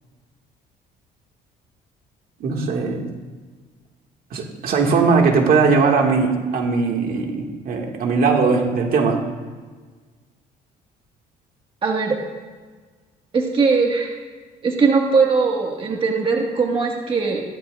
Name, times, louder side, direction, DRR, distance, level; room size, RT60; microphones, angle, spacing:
voice 1, 2.4-3.1 4.3-9.2, right 4 dB, 60° right, 1 dB, 2.0 m, -19 dB
voice 2, 11.8-12.2 13.3-14.1 14.6-17.4, right 4 dB, 35° right, 0 dB, 1.7 m, -20 dB
15.5 x 13.0 x 2.5 m, 1.4 s
cardioid pair, 110°, 17 cm